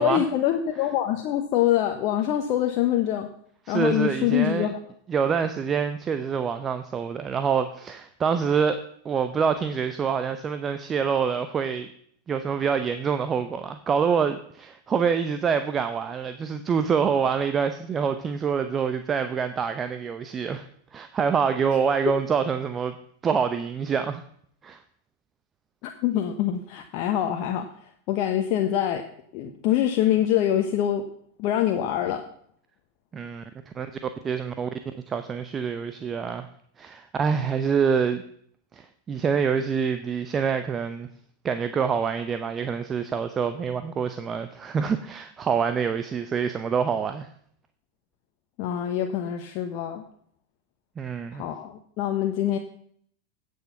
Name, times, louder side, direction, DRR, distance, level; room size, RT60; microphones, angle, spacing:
voice 1, 0.0-3.3 3.7-4.8 25.8-27.7 28.1-29.0 29.3-31.0 31.4-32.2 48.6-50.0 51.4-52.6, left 11 dB, 45° left, 4 dB, 1.1 m, -24 dB
voice 2, 3.7-4.7 5.1-11.9 12.3-20.6 20.9-22.9 23.2-24.2 24.6-24.8 33.1-33.9 34.2-34.7 35.1-36.5 36.8-38.2 38.7-41.1 41.4-47.3 51.0-51.4, right 6 dB, 25° right, 9 dB, 0.8 m, -26 dB
16.5 x 6.5 x 5.8 m, 0.63 s
figure-of-eight pair, 90°, 0 cm